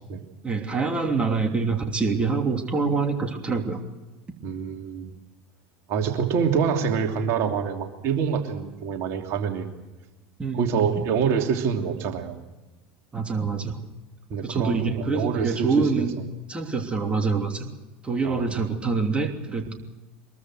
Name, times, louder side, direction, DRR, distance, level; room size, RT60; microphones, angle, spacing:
voice 1, 0.4-3.8 10.4-10.9 13.1-13.8 14.4-16.2 16.5-17.7 18.0-19.7, right 4 dB, 20° right, 3 dB, 3.1 m, -25 dB
voice 2, 4.4-5.1 5.9-9.7 10.5-12.3 14.3-16.1 18.2-18.5, right 6 dB, 50° right, 3 dB, 3.0 m, -26 dB
24.0 x 22.0 x 6.4 m, 1.1 s
figure-of-eight pair, 75°, 6 cm